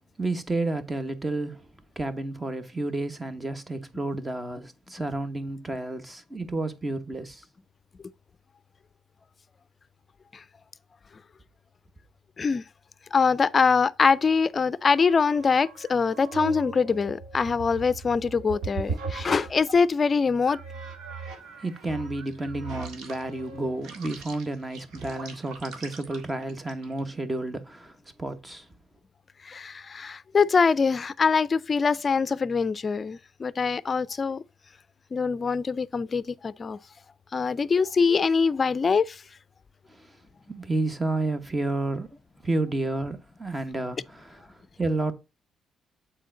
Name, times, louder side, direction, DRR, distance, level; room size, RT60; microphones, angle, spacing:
voice 1, 0.2-1.7 2.0-7.4 21.6-28.7 39.9-40.2 40.5-42.2 42.4-45.1, right 2 dB, 20° right, 1.2 m, -31 dB
voice 2, 13.1-20.6 29.4-34.4 35.1-36.8 37.3-39.2, left 5 dB, 35° left, 0.5 m, -23 dB
sound 1, 14.9-19.9 20.4-27.1, right 4 dB, 80° right, 1.7 m, -39 dB
7.5 x 4.4 x 3.8 m
cardioid pair, 90°, 0 cm